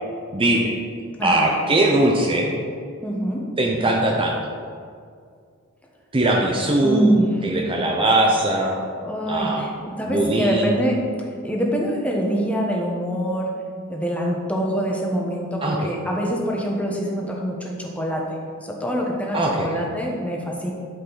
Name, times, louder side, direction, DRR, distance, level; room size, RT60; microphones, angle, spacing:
voice 1, 0.3-0.8 1.2-2.5 3.6-4.4 6.1-7.1 7.4-8.8 9.3-9.7 10.1-10.7 15.6-15.9 19.3-19.7, right 1 dB, 25° right, 0 dB, 0.7 m, -20 dB
voice 2, 1.2-1.5 3.0-3.4 6.8-7.3 9.0-9.7 10.0-11.0 11.4-13.5 13.9-18.2 18.6-20.7, equal, 5° left, -1 dB, 1.1 m, -24 dB
12.0 x 5.2 x 4.1 m, 2.2 s
head